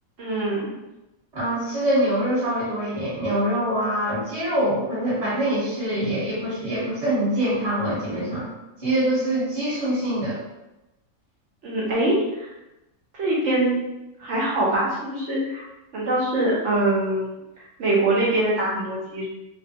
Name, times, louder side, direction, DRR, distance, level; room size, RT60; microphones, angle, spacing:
voice 1, 0.2-0.7 11.6-12.5 13.1-13.8 14.2-15.7 15.9-17.3 17.8-19.3, right 1 dB, 60° right, -4 dB, 1.1 m, -23 dB
voice 2, 1.3-8.5 8.8-10.4, right 1 dB, 30° right, -9 dB, 1.2 m, -24 dB
3.0 x 2.2 x 2.8 m, 0.96 s
omnidirectional pair, 1.5 m